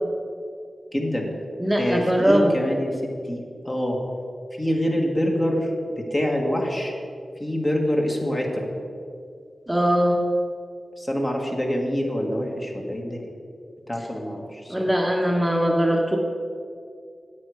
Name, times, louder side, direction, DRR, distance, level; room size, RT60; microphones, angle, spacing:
voice 1, 0.9-1.3 1.8-4.0 4.6-6.9 7.4-8.7 11.0-13.2 13.9-14.7, equal, 25° left, 0 dB, 1.7 m, -25 dB
voice 2, 1.6-2.6 9.7-10.2 14.7-16.2, equal, 10° right, -1 dB, 1.1 m, -21 dB
9.6 x 8.0 x 4.9 m, 2.2 s
cardioid pair, 65°, 0 cm